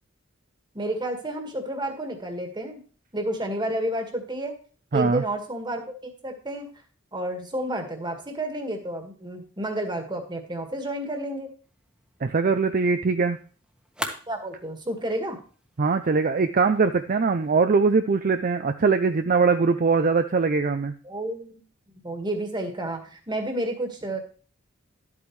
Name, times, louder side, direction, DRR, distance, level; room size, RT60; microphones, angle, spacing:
voice 1, 0.7-2.8 3.1-4.6 4.9-5.8 6.2-6.7 7.1-11.5 14.3-15.4 21.0-21.6 21.9-24.2, right 1 dB, 25° right, 5 dB, 1.7 m, -30 dB
voice 2, 4.9-5.2 12.2-13.4 15.8-20.9, right 4 dB, 45° right, 8 dB, 0.5 m, -22 dB
sound 1, 11.6-17.5, equal, 5° right, 1.3 m, -43 dB
12.0 x 8.4 x 3.2 m, 0.39 s
head